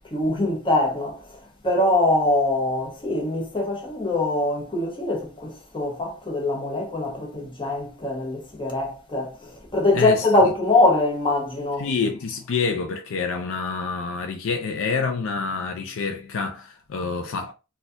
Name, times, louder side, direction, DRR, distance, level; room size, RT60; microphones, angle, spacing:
voice 1, 0.1-1.2 1.6-11.9, left 2 dB, 25° left, 1.1 m, -23 dB
voice 2, 9.9-10.3 11.8-17.5, left 4 dB, 60° left, 0.4 m, -27 dB
4.1 x 2.3 x 2.5 m
head